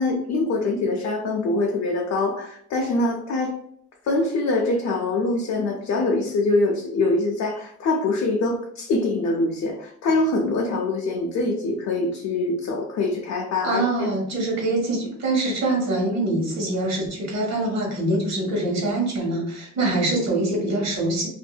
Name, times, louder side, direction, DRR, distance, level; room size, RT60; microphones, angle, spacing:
voice 1, 0.0-3.6 4.0-14.1, left 2 dB, 60° left, 0 dB, 0.6 m, -24 dB
voice 2, 13.6-21.3, right 2 dB, 60° right, -2 dB, 1.4 m, -24 dB
2.7 x 2.6 x 2.3 m, 0.65 s
cardioid pair, 90°, 30 cm